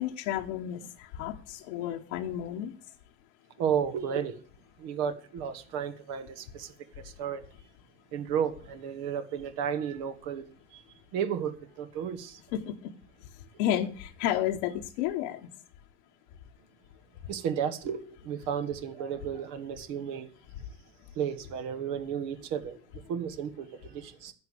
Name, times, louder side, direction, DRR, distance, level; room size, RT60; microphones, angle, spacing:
voice 1, 0.0-2.7 12.5-12.9 13.2-15.5, left 11 dB, 85° left, 1.1 m, -32 dB
voice 2, 3.6-4.4 4.8-7.4 8.1-10.5 10.7-10.8 11.1-12.4 17.3-20.3 21.1-22.8 23.1-24.3, right 8 dB, 75° right, 1.7 m, -33 dB
10.5 x 7.3 x 8.4 m
supercardioid pair, 105°, 33 cm